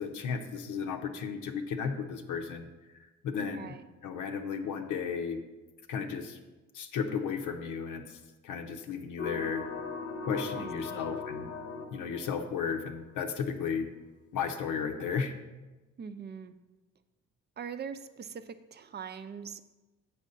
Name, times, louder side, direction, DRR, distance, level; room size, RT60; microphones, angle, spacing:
voice 1, 0.0-2.7 3.2-3.7 4.0-5.4 5.9-6.4 6.7-8.2 8.4-9.7 10.3-11.5 11.9-13.9 14.3-15.3, left 6 dB, 85° left, 4 dB, 0.8 m, -34 dB
voice 2, 3.4-3.8 10.5-11.1 16.0-16.5 17.6-19.6, right 6 dB, 35° right, 11 dB, 0.5 m, -42 dB
sound 1, 9.2-13.1, left 4 dB, 50° left, 0.8 m, -39 dB
7.5 x 4.2 x 6.5 m, 1.1 s
cardioid pair, 90°, 30 cm